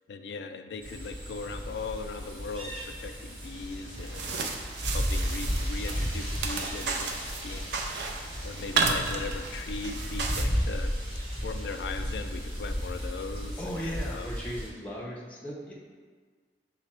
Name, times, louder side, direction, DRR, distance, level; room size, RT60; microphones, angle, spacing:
voice 1, 0.1-7.7 8.1-10.9 11.4-14.3, left 4 dB, 70° left, 7 dB, 0.3 m, -39 dB
sound 1, 0.8-14.7, equal, 30° right, 1.1 m, -34 dB
sound 2, 3.9-10.4, right 4 dB, 75° right, 0.4 m, -33 dB
voice 2, 13.6-15.7, equal, 10° left, -4 dB, 0.6 m, -37 dB
5.8 x 2.2 x 4.2 m, 1.6 s
head